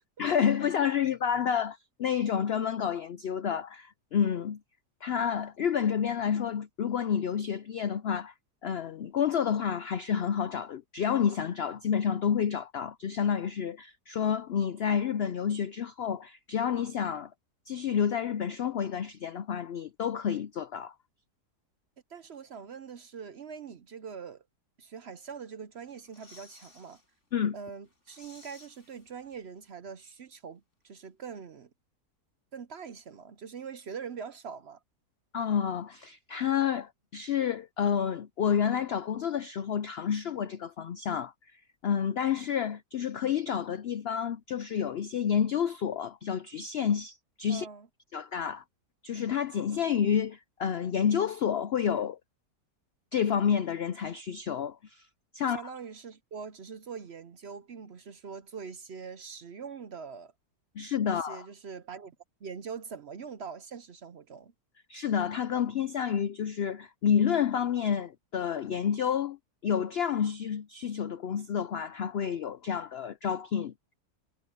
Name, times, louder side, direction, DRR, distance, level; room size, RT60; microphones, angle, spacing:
voice 1, 0.2-4.6 5.0-8.3 8.6-17.3 17.7-20.9 27.3-27.6 35.3-41.3 41.8-47.7 48.1-48.6 49.0-52.2 53.1-55.1 55.3-55.7 60.8-61.5 64.9-69.4 69.6-73.7, left 8 dB, 90° left, 0.5 m, -29 dB
voice 2, 22.1-24.4 24.8-27.0 27.5-31.7 32.5-34.8 47.5-47.9 55.4-60.3 61.1-62.2 62.4-64.5, right 6 dB, 55° right, 0.8 m, -43 dB
sound 1, 25.8-27.1 27.4-27.5 27.8-29.6 29.9-30.0, left 2 dB, 45° left, 6.0 m, -56 dB
omnidirectional pair, 1.7 m